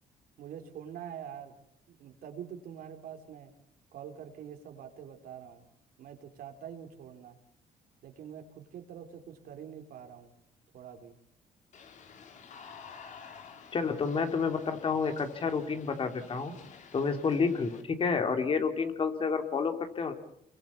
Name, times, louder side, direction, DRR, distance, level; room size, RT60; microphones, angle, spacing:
voice 1, 0.4-1.6 1.9-3.5 3.9-5.7 6.0-7.4 8.0-10.3 10.7-11.2, right 8 dB, 75° right, 5 dB, 4.3 m, -45 dB
sound 1, 11.7-17.8, left 6 dB, 50° left, 3.5 m, -51 dB
voice 2, 13.7-16.5 16.9-20.1, left 5 dB, 35° left, 6 dB, 3.0 m, -29 dB
28.5 x 23.0 x 7.1 m, 0.75 s
cardioid pair, 150°, 16 cm